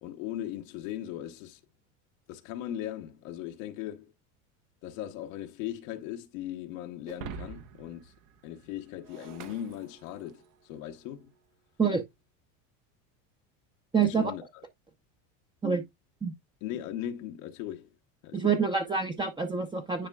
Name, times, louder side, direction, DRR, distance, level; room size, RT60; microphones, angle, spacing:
voice 1, 0.0-1.6 2.3-4.1 4.8-8.1 8.4-11.3 14.0-14.6 16.6-17.9 18.2-18.5, left 11 dB, 75° left, 1.1 m, -38 dB
Shatter, 7.1-10.5, right 7 dB, 50° right, 0.9 m, -46 dB
voice 2, 13.9-14.3 15.6-15.8 16.2-16.3 18.3-20.1, right 5 dB, 10° right, 0.7 m, -27 dB
10.0 x 4.3 x 2.3 m
supercardioid pair, 110°, 39 cm